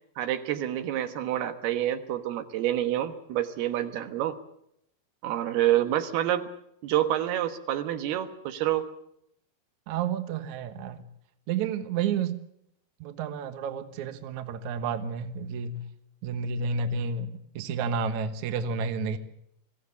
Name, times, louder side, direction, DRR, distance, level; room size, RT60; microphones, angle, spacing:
voice 1, 0.2-4.4 5.2-6.5 6.8-8.9, right 12 dB, 85° right, 9 dB, 3.2 m, -28 dB
voice 2, 9.9-11.0 11.5-12.4 13.0-15.8 16.2-19.2, right 5 dB, 60° right, 10 dB, 2.3 m, -31 dB
23.5 x 16.5 x 8.1 m, 0.73 s
omnidirectional pair, 4.4 m